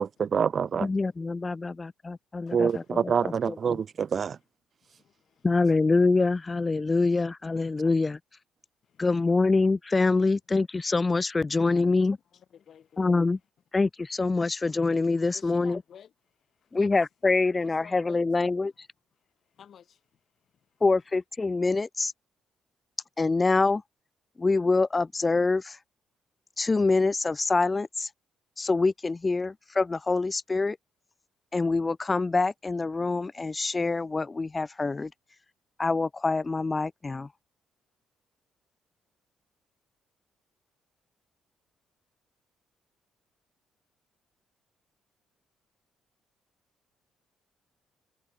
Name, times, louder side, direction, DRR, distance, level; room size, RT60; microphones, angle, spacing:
voice 1, 0.0-0.9 2.5-4.4, right 7 dB, 50° right, 0.5 m, -26 dB
voice 2, 0.8-3.8 5.4-8.2 9.0-12.2 13.0-13.4 13.7-15.8 16.7-18.7 20.8-22.1 23.2-23.8 24.4-25.8 26.6-28.1 28.6-30.8 31.5-35.1 35.8-37.3, left 3 dB, 30° left, 0.9 m, -25 dB
voice 3, 2.5-3.0 4.8-5.5 8.8-9.1 11.7-12.0 12.3-13.1 15.3-16.9 17.6-18.8 19.2-20.8, left 8 dB, 60° left, 6.6 m, -54 dB
supercardioid pair, 60°, 0 cm